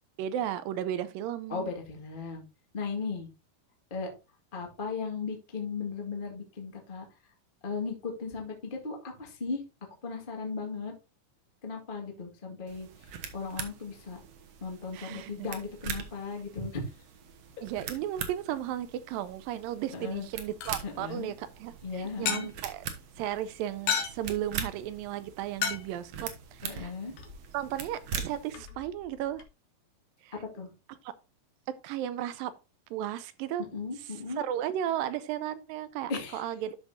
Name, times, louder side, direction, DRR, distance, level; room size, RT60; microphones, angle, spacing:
voice 1, 0.2-1.7 14.9-15.5 17.6-22.8 23.2-26.9 27.5-29.4 30.2-30.3 31.0-31.1 31.8-32.5 32.9-33.7 34.4-36.8, right 11 dB, 80° right, 2.2 m, -34 dB
voice 2, 1.5-2.4 2.7-3.3 3.9-4.1 4.5-7.0 7.6-9.6 10.0-10.9 11.6-13.1 13.3-14.2 14.6-16.8 19.9-20.3 20.8-21.3 21.8-22.5 26.6-27.1 30.3-30.7 33.7-34.4 36.1-36.5, left 4 dB, 30° left, 0.9 m, -36 dB
sound 1, 12.7-28.5, right 7 dB, 65° right, 1.7 m, -42 dB
sound 2, 20.1-29.4, left 8 dB, 70° left, 3.0 m, -39 dB
12.5 x 5.3 x 2.7 m
omnidirectional pair, 4.3 m